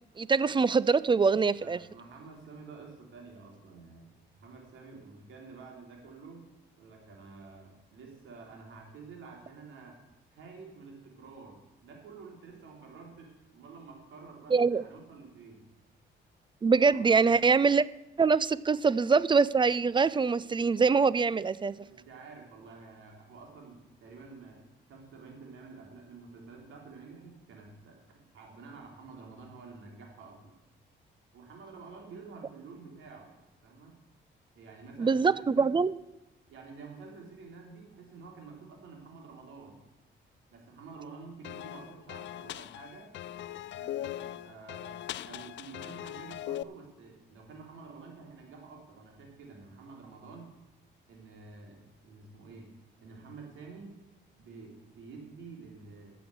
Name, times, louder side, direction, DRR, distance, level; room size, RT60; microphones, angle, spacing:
voice 1, 0.2-1.8 14.5-14.8 16.6-17.9 18.2-21.8 35.0-36.0, right 5 dB, 25° right, 0.4 m, -24 dB
voice 2, 1.6-6.5 6.8-10.0 10.3-15.6 16.9-17.0 21.8-24.6 24.9-30.5 31.3-34.0 34.6-35.7 36.5-39.8 40.5-43.1 43.8-50.5 51.1-52.7 53.0-54.0 54.4-56.1, right 4 dB, 80° right, 3.5 m, -49 dB
sound 1, 41.4-46.6, left 12 dB, 65° left, 0.5 m, -40 dB
12.0 x 7.0 x 7.8 m
cardioid pair, 90°, 20 cm